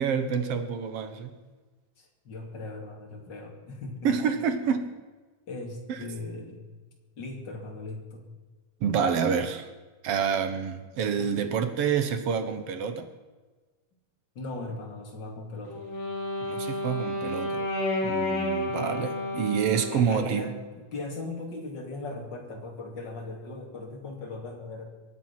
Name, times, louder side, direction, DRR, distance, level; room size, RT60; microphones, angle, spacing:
voice 1, 0.0-1.3 4.0-4.9 5.9-6.0 8.8-9.7 10.0-13.1 16.4-17.6 18.0-20.5, right 7 dB, 60° right, 9 dB, 1.8 m, -28 dB
voice 2, 2.0-4.1 5.5-6.6 7.2-8.3 14.3-15.9 19.9-20.5 20.9-24.8, left 2 dB, 35° left, 1 dB, 3.0 m, -38 dB
Wind instrument woodwind instrument, 15.7-20.2, left 1 dB, 50° left, 4.3 m, -31 dB
23.0 x 9.2 x 5.9 m, 1.3 s
omnidirectional pair, 3.5 m